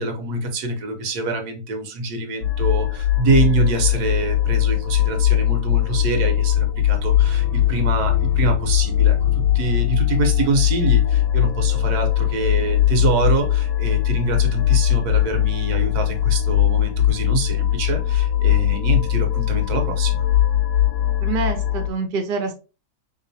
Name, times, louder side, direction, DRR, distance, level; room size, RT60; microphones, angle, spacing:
voice 1, 0.0-20.2, right 3 dB, 80° right, 5 dB, 1.3 m, -25 dB
sound 1, 2.4-21.9, left 12 dB, 70° left, 0.7 m, -20 dB
voice 2, 21.2-22.5, right 4 dB, 50° right, 5 dB, 0.7 m, -26 dB
3.7 x 3.0 x 2.6 m, 0.31 s
omnidirectional pair, 1.7 m